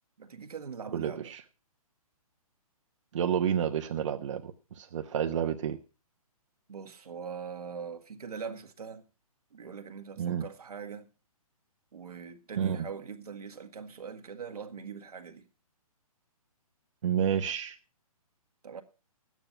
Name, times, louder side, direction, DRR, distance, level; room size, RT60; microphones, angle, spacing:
voice 1, 0.2-1.3 6.7-9.0 9.5-11.1 11.9-15.5 18.6-18.8, right 6 dB, 85° right, 1.9 m, -42 dB
voice 2, 0.9-1.4 3.1-5.8 10.2-10.5 12.6-12.8 17.0-17.8, right 8 dB, 55° right, 1.0 m, -30 dB
12.5 x 9.5 x 5.5 m
hypercardioid pair, 155°, 19 cm